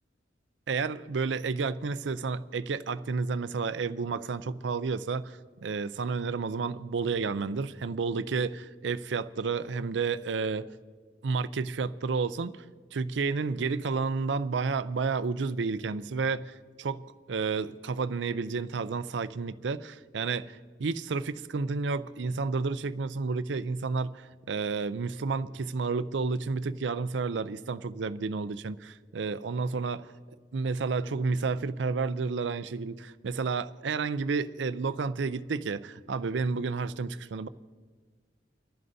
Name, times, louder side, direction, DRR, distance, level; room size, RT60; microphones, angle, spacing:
voice 1, 0.7-10.7 11.2-12.6 12.9-30.1 30.5-37.5, right 4 dB, 85° right, 0.5 m, -31 dB
29.5 x 11.0 x 2.7 m
head